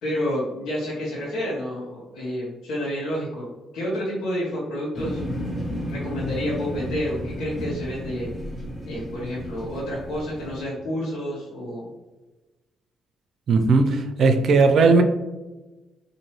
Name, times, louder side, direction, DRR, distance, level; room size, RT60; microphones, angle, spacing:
voice 1, 0.0-5.2 5.9-8.3 8.8-11.9, equal, 80° left, -8 dB, 1.2 m, -29 dB
sound 1, 4.9-10.6, equal, 20° left, 1.3 m, -33 dB
voice 2, 13.5-15.0, right 4 dB, 60° right, 7 dB, 0.5 m, -17 dB
4.3 x 2.7 x 3.1 m, 1.1 s
cardioid pair, 90°, 0 cm